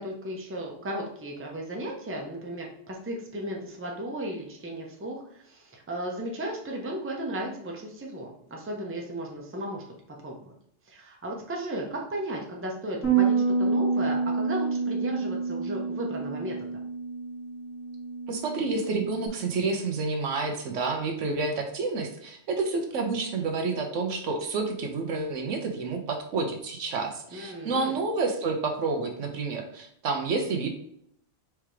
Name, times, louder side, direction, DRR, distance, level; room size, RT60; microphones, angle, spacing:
voice 1, 0.0-9.8 10.2-10.5 10.9-16.7 27.3-27.9, right 1 dB, 15° right, -1 dB, 0.7 m, -35 dB
Bass guitar, 13.0-19.3, right 4 dB, 90° left, 1.9 m, -28 dB
voice 2, 18.3-30.7, right 3 dB, 75° right, 4 dB, 1.1 m, -29 dB
4.6 x 3.5 x 3.2 m, 0.70 s
omnidirectional pair, 1.3 m